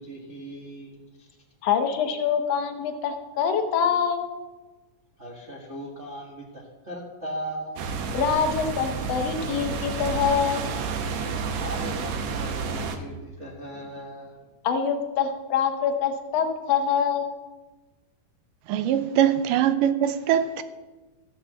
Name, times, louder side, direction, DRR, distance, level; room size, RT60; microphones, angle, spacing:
voice 1, 0.1-0.9 5.2-6.3 6.9-7.8 11.5-11.9 12.4-13.1 13.4-14.3, right 1 dB, 45° right, 0.9 m, -37 dB
voice 2, 1.6-4.3 8.1-10.6 14.6-17.3, left 7 dB, 65° left, 1.8 m, -25 dB
sound 1, 7.8-13.0, right 5 dB, 70° right, 1.9 m, -30 dB
voice 3, 18.7-20.6, right 10 dB, 85° right, 2.2 m, -22 dB
14.0 x 4.8 x 7.6 m
omnidirectional pair, 3.8 m